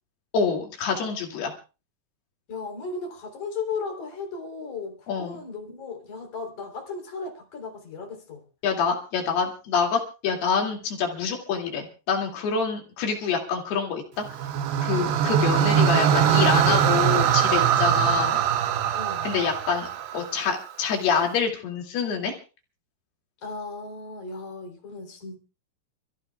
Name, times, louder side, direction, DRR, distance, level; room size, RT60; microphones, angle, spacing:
voice 1, 0.3-1.5 5.1-5.4 8.6-14.3 14.8-18.4 19.2-19.9 20.1-22.4, left 6 dB, 80° left, 4.5 m, -26 dB
voice 2, 2.5-8.4 18.9-19.3 23.4-25.4, left 4 dB, 50° left, 4.7 m, -36 dB
sound 1, 14.3-20.6, right 9 dB, 90° right, 3.2 m, -22 dB
29.0 x 15.0 x 2.4 m
omnidirectional pair, 4.5 m